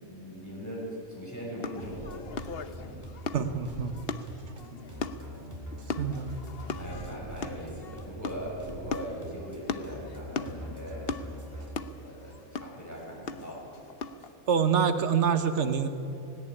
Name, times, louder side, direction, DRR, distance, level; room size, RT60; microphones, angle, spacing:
voice 1, 0.0-2.2 2.8-3.0 4.5-4.9 6.7-11.1 12.0-13.7, equal, 10° left, -4 dB, 6.8 m, -40 dB
sound 1, 1.6-14.3, left 5 dB, 50° left, 0.9 m, -39 dB
sound 2, 1.8-11.7, equal, 10° right, 2.8 m, -43 dB
voice 2, 3.3-3.9 6.0-6.4 14.5-15.9, right 7 dB, 55° right, 9 dB, 1.4 m, -26 dB
18.0 x 17.5 x 9.8 m, 3.0 s
omnidirectional pair, 1.5 m